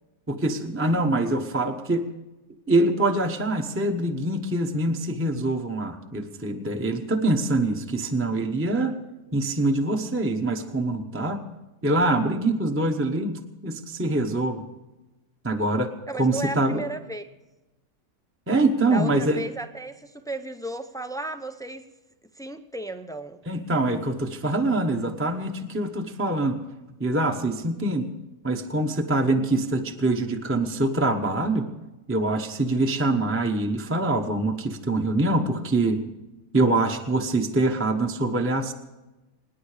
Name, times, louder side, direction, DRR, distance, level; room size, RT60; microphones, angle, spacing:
voice 1, 0.3-2.1 2.7-9.0 9.3-11.4 11.8-14.6 15.4-15.9 16.2-16.8 18.5-19.4 23.5-26.6 27.0-28.1 28.4-31.7 32.1-36.0 36.5-38.7, right 2 dB, 10° right, 0.9 m, -24 dB
voice 2, 16.1-17.3 18.9-21.9 22.4-23.4, right 1 dB, 5° left, 0.3 m, -34 dB
25.0 x 10.5 x 5.0 m
omnidirectional pair, 1.6 m